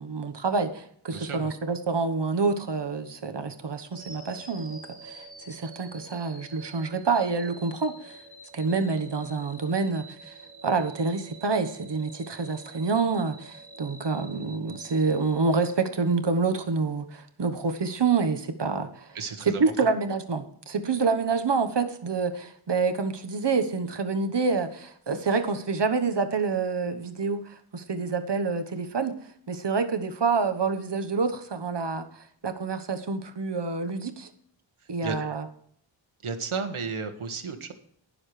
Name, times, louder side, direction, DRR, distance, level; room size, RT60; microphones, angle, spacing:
voice 1, 0.0-8.2 8.5-10.4 10.6-19.2 19.5-29.1 29.5-34.3 34.9-35.4, right 4 dB, 60° right, 8 dB, 1.2 m, -27 dB
voice 2, 1.1-1.5 19.1-19.6 34.8-35.2 36.2-37.7, right 5 dB, 90° right, 4 dB, 1.7 m, -33 dB
sound 1, 3.9-16.0, right 2 dB, 15° right, 2.3 m, -47 dB
20.5 x 7.2 x 3.3 m, 0.64 s
wide cardioid pair, 90°, 48 cm